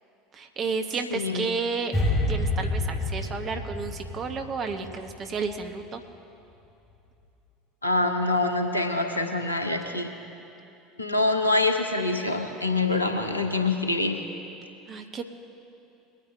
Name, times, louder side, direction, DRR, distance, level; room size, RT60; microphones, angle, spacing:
voice 1, 0.3-1.9 2.3-6.0 14.9-15.2, right 5 dB, 35° right, 5 dB, 1.3 m, -31 dB
voice 2, 1.1-1.4 7.8-10.1 11.0-14.2, left 2 dB, 85° left, 4 dB, 1.1 m, -25 dB
sound 1, 1.9-5.1 5.4-5.6, left 1 dB, 15° left, 2.8 m, -28 dB
22.5 x 9.4 x 3.6 m, 2.8 s
figure-of-eight pair, 70°, 0 cm